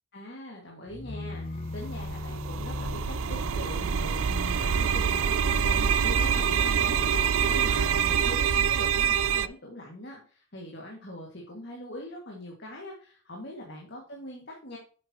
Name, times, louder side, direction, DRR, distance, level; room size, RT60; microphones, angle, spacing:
voice 1, 0.1-14.8, left 1 dB, 50° left, -1 dB, 2.1 m, -42 dB
sound 1, 0.9-8.6, left 2 dB, 30° left, 0.5 m, -39 dB
sound 2, 1.7-9.5, right 7 dB, 75° right, 0.5 m, -26 dB
9.3 x 8.5 x 3.0 m, 0.41 s
head